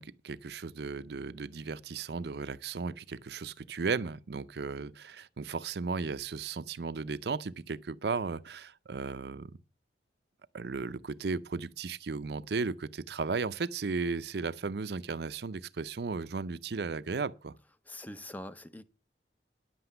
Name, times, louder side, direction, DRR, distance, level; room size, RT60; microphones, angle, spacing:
voice 1, 0.0-9.5 10.5-17.5, right 4 dB, 65° right, 0.5 m, -35 dB
voice 2, 17.9-18.8, left 1 dB, 10° left, 0.6 m, -43 dB
10.5 x 7.9 x 6.8 m
head